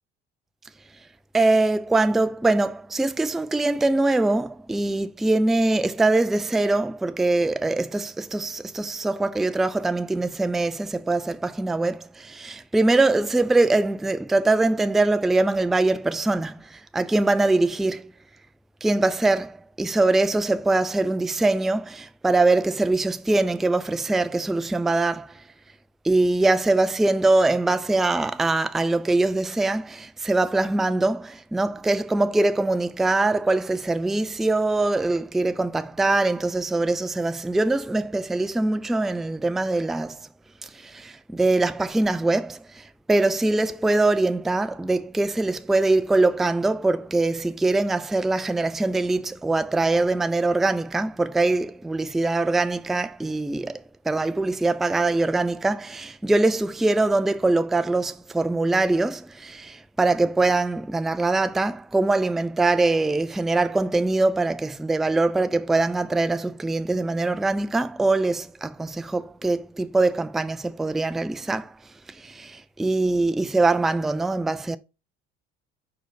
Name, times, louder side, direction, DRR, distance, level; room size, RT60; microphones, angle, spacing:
voice 1, 1.3-18.1 18.8-25.4 26.0-40.3 40.6-71.8 72.1-74.8, right 2 dB, ahead, 0.3 m, -23 dB
4.6 x 4.1 x 5.8 m
hypercardioid pair, 60°, 31 cm